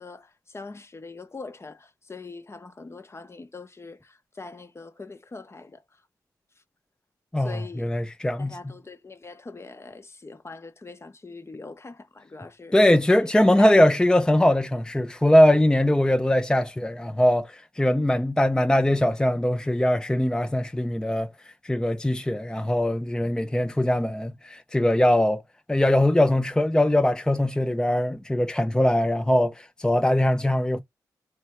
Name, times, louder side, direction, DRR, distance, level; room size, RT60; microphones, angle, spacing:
voice 1, 0.0-5.8 7.4-7.9 8.4-12.8 13.6-13.8, left 3 dB, 35° left, 0.8 m, -42 dB
voice 2, 7.3-8.7 12.7-21.3 21.6-25.4 25.7-30.8, left 1 dB, 10° left, 0.5 m, -21 dB
4.5 x 2.8 x 3.1 m
supercardioid pair, 45°, 8 cm